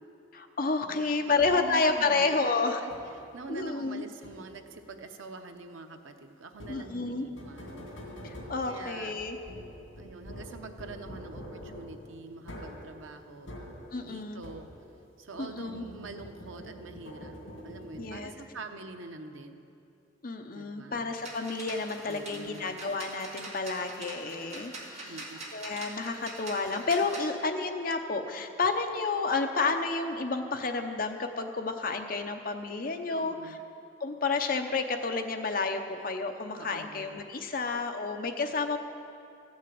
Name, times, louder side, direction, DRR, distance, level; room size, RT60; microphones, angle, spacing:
voice 1, 0.3-2.8 3.5-4.0 6.7-7.3 8.2-9.4 13.9-14.4 15.4-15.8 18.0-18.3 20.2-25.1 25.5-33.5 34.0-38.8, left 3 dB, 45° left, 5 dB, 0.8 m, -30 dB
voice 2, 0.8-2.4 2.8-2.9 3.2-7.9 8.7-9.1 10.0-13.6 14.0-14.7 15.2-17.4 17.6-19.6 20.5-21.1 22.0-22.7 25.0-25.4 33.1-33.6 36.6-37.1, right 3 dB, 80° right, 6 dB, 0.8 m, -45 dB
sound 1, 1.4-1.9 2.9-3.4 4.2-4.8 6.5-15.0 15.3-18.5, equal, 80° left, 2.5 m, -46 dB
sound 2, 21.1-27.3, right 2 dB, 35° right, 1.9 m, -44 dB
14.0 x 6.4 x 8.6 m, 2.7 s
head